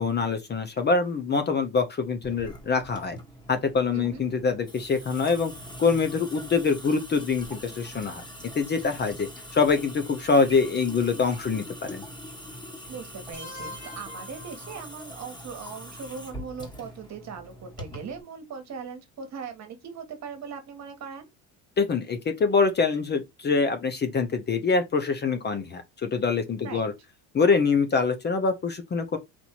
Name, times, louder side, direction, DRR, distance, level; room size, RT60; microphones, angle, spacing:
voice 1, 0.0-3.2 3.5-5.5 5.8-8.2 8.5-12.0 21.8-26.9 27.3-29.2, left 4 dB, 25° left, 0.7 m, -25 dB
Water tap faucet / Sink (filling or washing) / Drip, 2.2-18.2, equal, 10° left, 1.5 m, -43 dB
voice 2, 3.9-4.2 12.9-21.3 26.6-26.9, right 6 dB, 45° right, 1.4 m, -39 dB
sound 1, 13.3-15.3, left 2 dB, 65° left, 2.2 m, -43 dB
4.3 x 2.7 x 4.4 m
cardioid pair, 120°, 39 cm